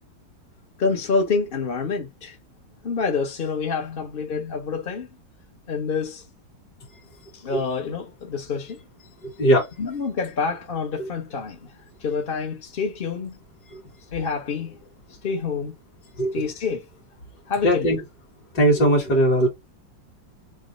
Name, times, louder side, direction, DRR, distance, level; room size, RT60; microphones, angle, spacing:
voice 1, 0.8-2.4 2.8-5.1 5.7-6.2 7.4-8.8 9.8-11.6 12.0-13.3 14.1-14.8 15.2-15.7 16.3-16.9 17.5-18.0, left 5 dB, 40° left, 0.8 m, -27 dB
voice 2, 17.6-18.0 18.5-19.5, right 1 dB, 60° left, 2.5 m, -19 dB
6.3 x 2.1 x 3.9 m
omnidirectional pair, 2.0 m